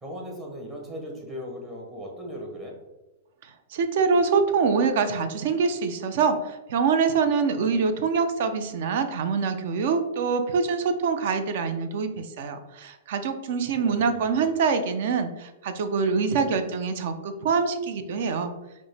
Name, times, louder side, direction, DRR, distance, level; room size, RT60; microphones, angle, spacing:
voice 1, 0.0-2.7 13.7-14.5, equal, 15° right, -1 dB, 0.8 m, -38 dB
voice 2, 3.4-18.5, right 5 dB, 55° right, 8 dB, 0.4 m, -25 dB
5.1 x 2.0 x 3.2 m, 1.0 s
hypercardioid pair, 155°, 0 cm